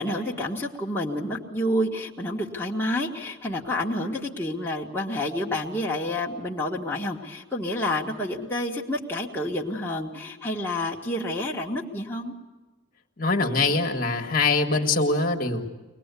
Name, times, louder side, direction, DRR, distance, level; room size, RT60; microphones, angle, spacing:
voice 1, 0.0-12.3, left 1 dB, 10° left, -4 dB, 1.7 m, -29 dB
voice 2, 13.2-15.7, left 3 dB, 45° left, 3 dB, 1.7 m, -23 dB
23.5 x 20.5 x 8.4 m, 1.2 s
head